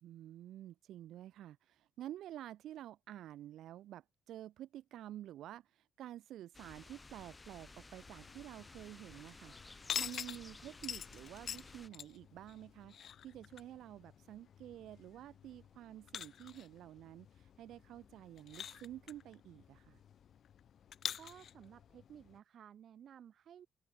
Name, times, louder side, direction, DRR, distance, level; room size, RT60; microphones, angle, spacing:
voice 1, 0.0-20.0, right 12 dB, 80° right, 0.5 m, -50 dB
sound 1, 6.5-11.9, left 3 dB, 20° left, 2.4 m, -55 dB
sound 2, 8.0-22.4, left 9 dB, 60° left, 0.7 m, -48 dB
voice 2, 21.2-23.7, right 9 dB, 65° right, 3.6 m, -56 dB
cardioid pair, 90°, 0 cm